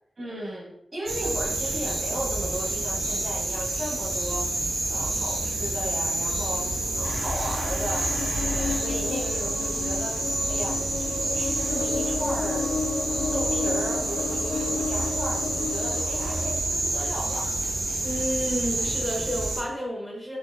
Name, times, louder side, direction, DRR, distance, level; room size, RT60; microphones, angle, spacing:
voice 1, 0.2-8.1 8.5-12.8 13.3-17.6, right 1 dB, 50° right, -5 dB, 1.5 m, -35 dB
sound 1, 1.1-19.6, right 2 dB, 85° right, 0.7 m, -28 dB
sound 2, 7.0-10.9, left 2 dB, 85° left, 1.4 m, -37 dB
sound 3, 7.1-16.6, left 4 dB, 70° left, 0.4 m, -32 dB
voice 2, 18.0-20.4, equal, 5° left, -2 dB, 0.6 m, -30 dB
4.2 x 2.6 x 2.4 m, 0.82 s
wide cardioid pair, 125°, 0 cm